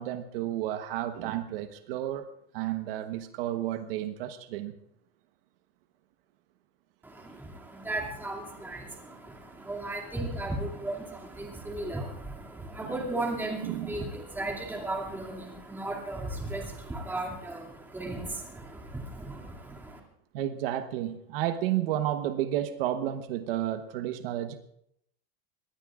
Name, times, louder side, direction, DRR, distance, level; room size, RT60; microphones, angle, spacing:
voice 1, 0.0-2.3 2.5-4.8 12.8-13.0 13.6-13.9 20.3-24.6, right 12 dB, 70° right, 8 dB, 1.1 m, -31 dB
voice 2, 7.0-20.0, right 2 dB, 5° right, -1 dB, 2.4 m, -36 dB
23.5 x 19.5 x 2.5 m, 0.73 s
supercardioid pair, 160°, 30 cm